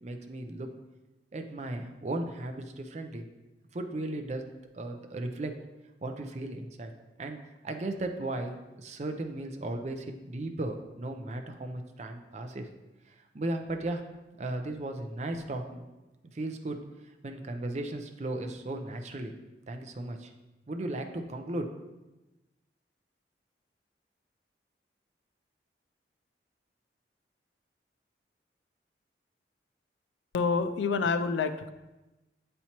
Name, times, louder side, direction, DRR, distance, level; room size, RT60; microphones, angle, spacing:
voice 1, 0.0-0.7 1.3-3.3 3.7-5.5 6.0-6.9 7.2-12.7 13.1-14.0 14.4-15.9 16.2-16.8 17.2-19.3 19.7-20.3 20.7-21.7, right 2 dB, 40° right, 5 dB, 0.5 m, -36 dB
voice 2, 30.3-31.7, left 4 dB, 90° left, 11 dB, 0.4 m, -27 dB
8.2 x 4.4 x 2.9 m, 1.1 s
head